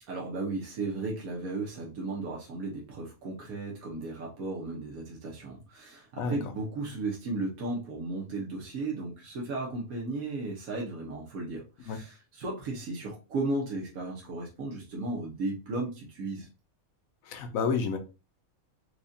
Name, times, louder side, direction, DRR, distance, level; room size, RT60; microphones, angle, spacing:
voice 1, 0.1-16.5, right 2 dB, 90° right, 1.4 m, -35 dB
voice 2, 17.3-18.0, left 5 dB, 75° left, 1.1 m, -29 dB
4.8 x 2.4 x 2.6 m
omnidirectional pair, 1.5 m